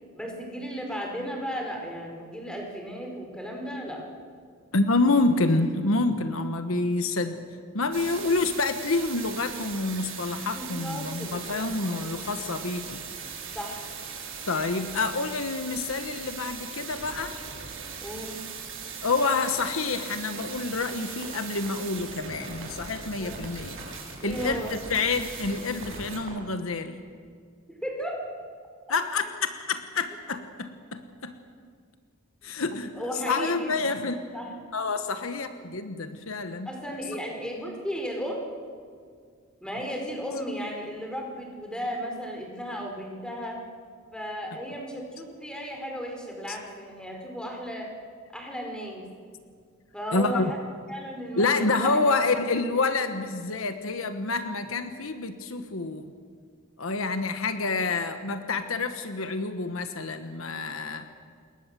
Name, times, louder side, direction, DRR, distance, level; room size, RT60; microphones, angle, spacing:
voice 1, 0.1-4.2 10.6-11.6 11.9-12.3 13.5-13.8 18.0-18.4 23.2-23.4 24.2-24.7 27.7-28.2 32.9-34.0 34.3-34.5 36.6-38.4 39.6-43.6 44.1-47.9 48.3-49.0 49.9-50.6 50.9-52.3, equal, 5° left, 1 dB, 4.7 m, -35 dB
voice 2, 4.7-7.4 7.7-13.0 14.5-17.4 19.0-27.0 28.9-31.3 32.4-34.2 34.7-36.7 46.5-46.6 50.1-50.5 51.4-56.1 56.8-61.1, left 3 dB, 70° left, 8 dB, 1.3 m, -28 dB
sound 1, 7.9-26.2, right 6 dB, 70° right, 7.7 m, -39 dB
sound 2, 19.1-19.2 19.5-19.6 19.9-20.1 20.4-20.5 20.8-21.0 21.2-21.8 22.1-22.2 22.5-23.0 23.4-23.5 23.8-23.9 24.2-24.3 24.6-24.7 25.0-25.2 25.4-25.5 25.8-26.0 26.3-26.4 26.7-26.8, right 3 dB, 45° right, 4.9 m, -46 dB
27.5 x 21.5 x 7.6 m, 2.1 s
head